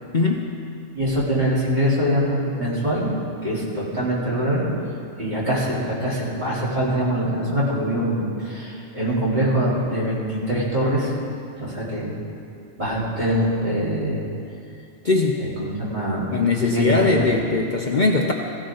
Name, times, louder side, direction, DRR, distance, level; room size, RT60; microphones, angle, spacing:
voice 1, 0.1-0.5 15.0-15.4 16.3-18.3, left 3 dB, 45° left, 1 dB, 0.9 m, -20 dB
voice 2, 0.9-3.1 3.4-4.7 5.2-11.1 11.6-12.1 12.8-14.3 15.4-16.3 16.7-17.1, equal, 35° right, -8 dB, 4.4 m, -23 dB
20.5 x 15.5 x 3.9 m, 2.4 s
omnidirectional pair, 1.3 m